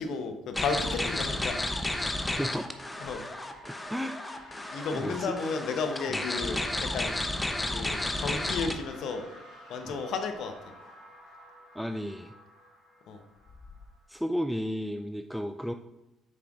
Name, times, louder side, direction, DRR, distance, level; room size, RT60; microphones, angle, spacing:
voice 1, 0.0-1.6 3.0-3.2 4.7-6.6 6.9-7.1 7.7-9.3 9.7-10.5 13.1-13.2, left 4 dB, 65° left, 7 dB, 0.8 m, -33 dB
sound 1, 0.5-8.7, left 1 dB, 15° left, 0.7 m, -32 dB
sound 2, 0.6-14.3, equal, 85° left, 2.2 m, -52 dB
voice 2, 4.9-5.3 6.1-6.2 9.8-10.0 11.7-12.3 14.1-15.7, equal, ahead, 7 dB, 0.3 m, -33 dB
7.8 x 5.7 x 2.4 m, 0.97 s
hypercardioid pair, 50°, 0 cm